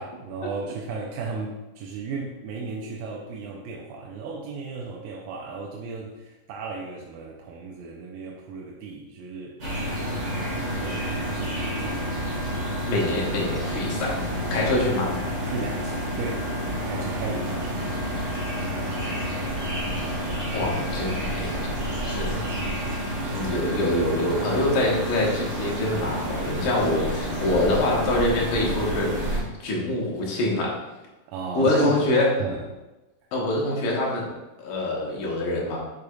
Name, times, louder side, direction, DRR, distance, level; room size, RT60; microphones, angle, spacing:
voice 1, 0.0-9.6 10.3-12.5 15.5-16.5 16.9-18.0 19.9-20.0 22.5-22.8 23.3-23.5 31.3-32.1 32.4-32.7, right 4 dB, 85° right, -1 dB, 2.4 m, -34 dB
sound 1, 9.6-29.4, equal, 35° right, 2.0 m, -29 dB
voice 2, 12.9-14.1 14.5-15.1 20.5-21.8 22.0-22.4 23.3-30.7 31.5-32.3 33.3-34.3 34.6-35.8, left 1 dB, 70° left, -3 dB, 2.8 m, -25 dB
6.8 x 6.6 x 2.3 m, 1.1 s
omnidirectional pair, 4.1 m